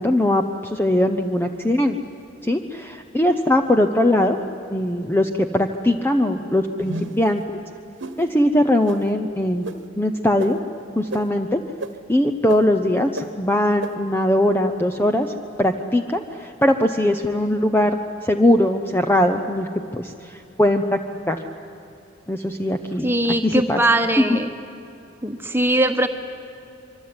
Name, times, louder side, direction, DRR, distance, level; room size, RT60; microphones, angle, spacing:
voice 1, 0.0-2.0 2.4-4.4 4.7-7.4 8.2-9.7 10.0-10.6 11.0-11.6 12.1-19.7 19.9-21.0 21.3-21.4 22.3-23.1 23.4-23.8 24.3-24.4, left 1 dB, 10° left, 6 dB, 0.7 m, -20 dB
sound 1, 6.8-7.3 8.0-8.2 8.9-9.0 9.6-9.8 10.4-10.5 11.1-11.2 11.8-11.9 12.5-12.6 13.2-13.3 13.8-13.9, right 2 dB, 65° right, 1.4 m, -30 dB
voice 2, 23.0-24.5 25.2-26.1, right 1 dB, 10° right, 6 dB, 1.4 m, -20 dB
25.5 x 24.0 x 9.6 m, 2.8 s
head